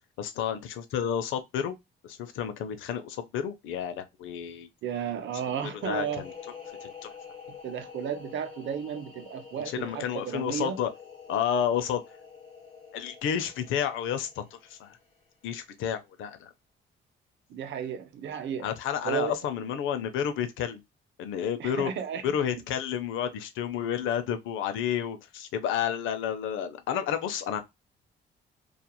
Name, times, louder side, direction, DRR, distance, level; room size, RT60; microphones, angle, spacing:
voice 1, 0.2-1.8 2.0-4.7 5.8-6.3 6.8-7.1 9.6-10.9 11.3-12.0 12.9-15.0 15.4-16.5 18.6-20.8 21.2-21.9 22.2-27.6, left 9 dB, 90° left, 0.5 m, -31 dB
voice 2, 4.8-6.2 7.6-10.8 17.5-18.7 19.0-19.3 21.6-22.2, right 8 dB, 70° right, 0.7 m, -33 dB
sound 1, 5.6-15.2, left 6 dB, 25° left, 1.2 m, -47 dB
2.9 x 2.4 x 2.2 m
cardioid pair, 90°, 20 cm